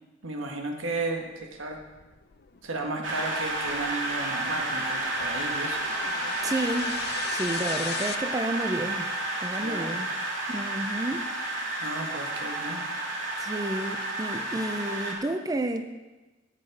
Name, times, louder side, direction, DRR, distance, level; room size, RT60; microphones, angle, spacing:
voice 1, 0.2-1.8 2.6-5.9 9.6-10.0 11.8-12.8, right 2 dB, 90° right, 2 dB, 1.7 m, -34 dB
sound 1, 1.2-8.2, left 7 dB, 55° left, 0.6 m, -40 dB
sound 2, 3.0-15.1, right 2 dB, 70° right, 2.4 m, -31 dB
voice 2, 6.4-7.0 7.3-9.1 9.4-10.1 10.5-11.3 13.4-15.8, right 1 dB, 20° right, 7 dB, 0.5 m, -31 dB
16.5 x 6.4 x 4.8 m, 1.1 s
head